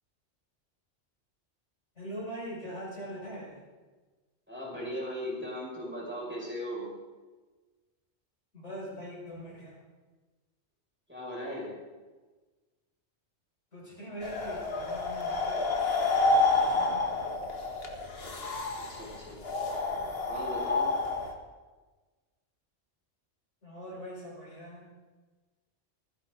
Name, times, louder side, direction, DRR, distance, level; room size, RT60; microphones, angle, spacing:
voice 1, 1.9-3.6 8.5-9.8 13.7-15.6 16.6-17.1 23.6-24.9, equal, 80° left, -6 dB, 6.6 m, -42 dB
voice 2, 4.5-6.9 11.1-11.7 18.9-20.9, equal, 10° right, -5 dB, 6.1 m, -38 dB
sound 1, 14.2-21.3, left 3 dB, 55° left, 1.8 m, -29 dB
26.0 x 10.5 x 3.9 m, 1.3 s
omnidirectional pair, 1.2 m